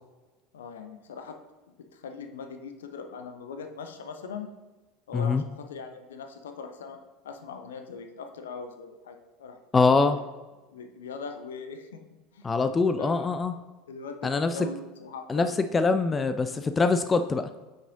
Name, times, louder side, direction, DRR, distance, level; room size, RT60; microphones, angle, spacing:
voice 1, 0.5-1.4 1.9-4.5 5.1-7.0 7.2-9.6 9.9-10.1 10.7-12.0 12.3-12.5 12.9-13.3 13.9-15.5, left 5 dB, 70° left, 6 dB, 0.6 m, -40 dB
voice 2, 5.1-5.4 9.7-10.2 12.4-13.5 14.2-14.5 15.3-17.5, left 4 dB, 20° left, 9 dB, 0.3 m, -23 dB
8.2 x 6.0 x 2.7 m, 1.2 s
figure-of-eight pair, 70°, 0 cm